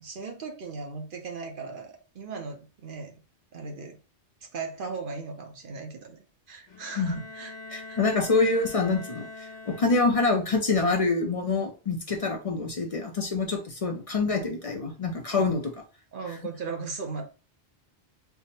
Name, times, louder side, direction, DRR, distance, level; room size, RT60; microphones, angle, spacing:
voice 1, 0.0-3.1 3.5-4.0 4.4-7.5 7.9-8.0 15.3-15.6 16.1-17.3, right 4 dB, 55° right, 3 dB, 0.8 m, -37 dB
Bowed string instrument, 6.7-10.3, left 2 dB, 85° left, 1.3 m, -43 dB
voice 2, 7.7-15.6, left 3 dB, 40° left, 3 dB, 0.5 m, -26 dB
3.4 x 2.1 x 4.0 m, 0.33 s
omnidirectional pair, 1.1 m